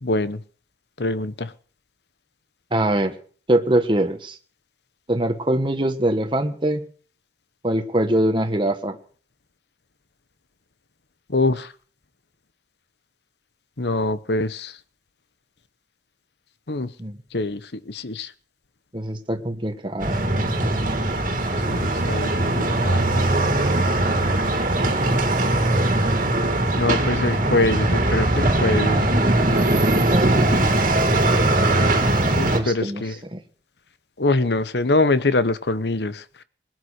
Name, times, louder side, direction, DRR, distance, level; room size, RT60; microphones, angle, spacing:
voice 1, 0.0-0.4 1.0-1.5 11.3-11.7 13.8-14.8 16.7-16.9 17.3-18.3 21.6-23.3 26.8-29.1 32.4-33.1 34.2-36.2, left 2 dB, 70° left, 14 dB, 1.1 m, -24 dB
voice 2, 2.7-3.2 3.5-4.4 5.1-6.8 7.6-9.0 17.0-17.2 18.9-20.2 29.8-30.5 32.5-33.0 33.3-33.4, right 1 dB, 25° right, 6 dB, 1.4 m, -23 dB
sound 1, 20.0-32.6, right 1 dB, 45° right, 2.4 m, -20 dB
21.0 x 9.5 x 6.5 m, 0.43 s
head